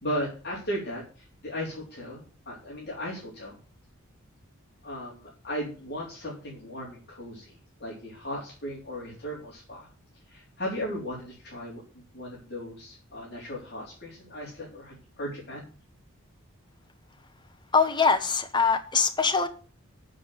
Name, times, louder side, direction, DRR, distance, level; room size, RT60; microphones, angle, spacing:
voice 1, 0.0-3.6 4.8-7.5 7.8-9.9 10.3-15.7, equal, 50° left, 3.8 m, -36 dB
voice 2, 17.7-19.5, left 5 dB, 20° left, 0.9 m, -23 dB
8.6 x 7.7 x 7.8 m
head